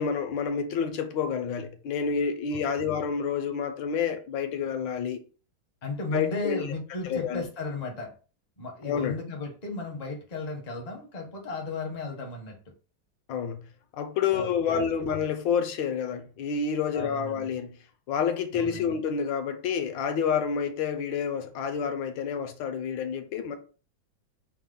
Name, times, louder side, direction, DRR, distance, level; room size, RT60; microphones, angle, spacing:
voice 1, 0.0-5.2 6.1-6.7 7.1-7.4 8.8-9.2 13.3-13.6 14.0-17.8 18.1-23.6, left 6 dB, 75° left, 1.3 m, -29 dB
voice 2, 2.5-2.9 5.8-8.1 8.6-12.6 14.3-14.8 16.9-17.5 18.5-19.0, left 3 dB, 40° left, 0.6 m, -35 dB
5.6 x 2.1 x 3.7 m
omnidirectional pair, 2.2 m